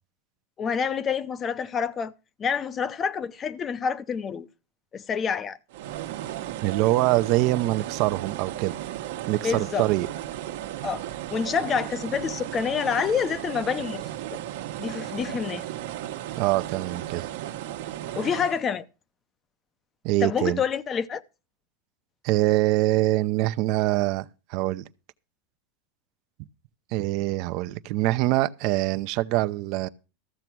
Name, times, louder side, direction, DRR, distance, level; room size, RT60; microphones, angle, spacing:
voice 1, 0.6-2.1 2.4-4.5 4.9-5.6 9.4-9.9 10.8-11.0 11.3-14.1 14.8-15.6 18.2-18.9 20.2-21.2, left 6 dB, 25° left, 0.7 m, -27 dB
sound 1, 5.7-18.6, right 13 dB, 75° right, 1.2 m, -35 dB
voice 2, 6.6-8.7 9.3-10.1 16.4-17.3 20.0-20.6 22.2-24.2 24.5-24.8 26.9-29.9, right 17 dB, 55° right, 0.6 m, -24 dB
14.0 x 6.8 x 6.0 m
supercardioid pair, 125°, 0 cm